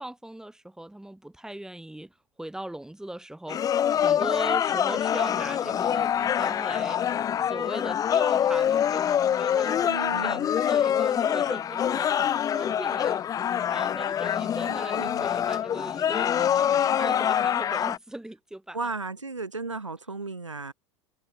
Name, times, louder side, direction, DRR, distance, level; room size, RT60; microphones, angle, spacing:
voice 1, 0.0-7.1 7.4-13.3 13.7-18.8, right 1 dB, 5° right, 5.7 m, -39 dB
sound 1, 3.5-18.0, left 9 dB, 25° left, 0.5 m, -25 dB
voice 2, 9.9-10.5 14.6-15.3 18.7-20.7, right 3 dB, 85° right, 1.5 m, -35 dB
figure-of-eight pair, 80°, 15 cm